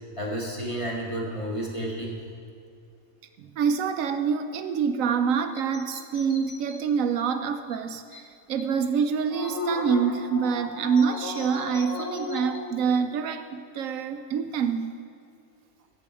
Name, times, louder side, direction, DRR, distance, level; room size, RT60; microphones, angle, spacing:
voice 1, 0.2-2.2, right 1 dB, 20° left, -4 dB, 2.0 m, -31 dB
voice 2, 3.4-14.9, right 6 dB, 75° right, 9 dB, 1.0 m, -26 dB
sound 1, 5.5-6.8 7.3-7.4 7.7-7.8 8.1-8.2 8.6-8.7 9.0-12.7, left 3 dB, 65° left, 1.4 m, -35 dB
13.5 x 8.3 x 4.8 m, 2.4 s
omnidirectional pair, 1.4 m